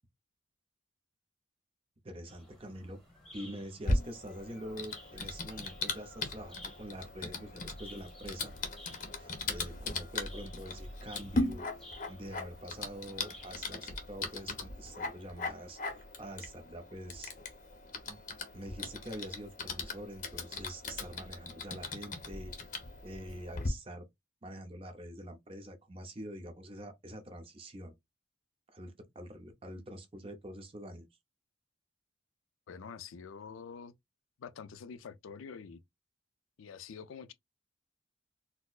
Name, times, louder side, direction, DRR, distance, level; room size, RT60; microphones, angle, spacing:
voice 1, 2.0-3.0 3.3-8.5 9.2-11.7 12.1-17.3 18.1-18.2 18.5-22.5 23.0-24.1 24.4-27.9 28.7-31.1, equal, 25° right, 0.6 m, -45 dB
sound 1, 2.3-13.6, left 1 dB, ahead, 1.1 m, -56 dB
Typing, 3.8-23.7, left 2 dB, 40° left, 0.7 m, -39 dB
voice 2, 32.7-33.9 34.4-35.8 36.6-37.3, left 6 dB, 85° left, 0.4 m, -46 dB
4.2 x 2.0 x 2.4 m
head